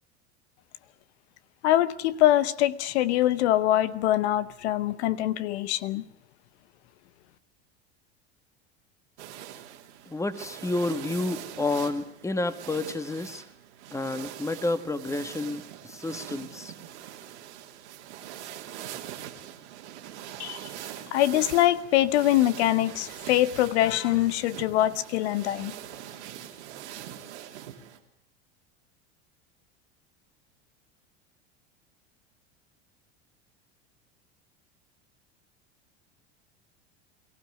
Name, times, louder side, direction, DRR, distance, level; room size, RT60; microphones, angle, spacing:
voice 1, 1.6-6.0 20.4-20.7 21.1-25.7, left 13 dB, 75° left, 16 dB, 0.9 m, -24 dB
sound 1, 9.2-28.0, right 11 dB, 80° right, 2.9 m, -43 dB
voice 2, 10.1-13.4 13.9-16.7, left 2 dB, 10° left, 11 dB, 1.5 m, -30 dB
22.5 x 15.5 x 9.4 m, 0.75 s
hypercardioid pair, 90°, 34 cm